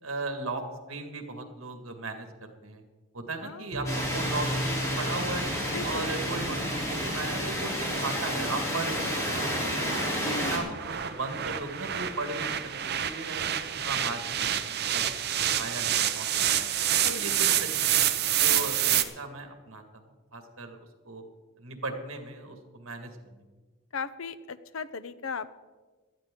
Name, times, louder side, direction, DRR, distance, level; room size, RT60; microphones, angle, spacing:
voice 1, 0.0-2.8 3.1-5.5 5.8-9.0 9.3-9.8 10.4-12.6 12.8-15.0 15.6-16.7 17.1-20.0 20.3-20.8 21.0-21.2 21.6-23.4, right 3 dB, 80° right, 5 dB, 2.0 m, -37 dB
voice 2, 3.4-3.8 5.7-6.1 10.2-10.8 17.0-17.4 23.9-25.5, left 4 dB, 75° left, 13 dB, 0.7 m, -37 dB
sound 1, 3.7-8.8, equal, 35° right, 1.1 m, -38 dB
sound 2, 3.9-10.6, equal, 15° left, 3.4 m, -31 dB
sound 3, 4.5-19.0, right 10 dB, 50° right, 0.8 m, -29 dB
18.0 x 13.0 x 3.8 m, 1.3 s
head